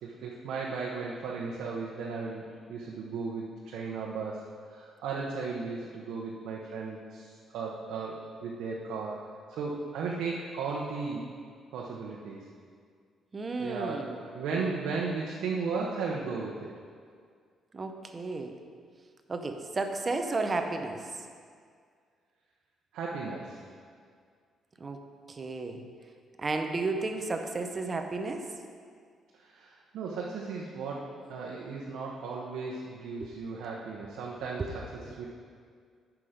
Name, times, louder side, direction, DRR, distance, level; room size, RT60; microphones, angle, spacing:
voice 1, 0.0-2.4 2.7-9.2 9.5-11.2 11.7-12.4 13.6-16.7 22.9-23.6 29.4-34.8 35.2-35.3, right 4 dB, 85° right, -3 dB, 0.9 m, -35 dB
voice 2, 13.3-14.2 17.7-18.6 19.3-21.1 24.8-25.0 25.3-25.8 26.4-28.4 33.2-33.3 34.6-34.7, right 3 dB, 30° right, 5 dB, 0.7 m, -33 dB
8.8 x 6.1 x 5.1 m, 2.1 s
cardioid pair, 120°, 0 cm